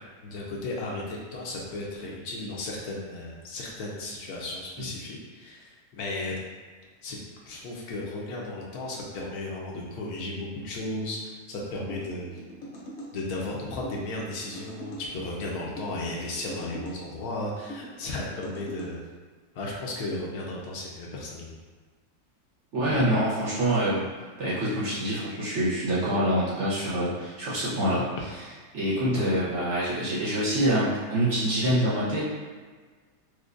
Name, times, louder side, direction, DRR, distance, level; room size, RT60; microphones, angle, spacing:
voice 1, 0.2-6.3 7.0-7.2 7.5-11.2 11.5-12.4 13.1-19.0 19.6-21.5 22.9-23.0, left 2 dB, 75° left, -3 dB, 1.1 m, -35 dB
sound 1, 11.9-13.1 13.8-15.1 15.8-17.0 17.7-18.9, equal, 60° left, 0.9 m, -42 dB
voice 2, 22.7-24.1 24.4-28.1 28.7-32.2, right 1 dB, 55° right, -8 dB, 0.9 m, -25 dB
4.7 x 2.2 x 2.5 m, 1.5 s
omnidirectional pair, 1.7 m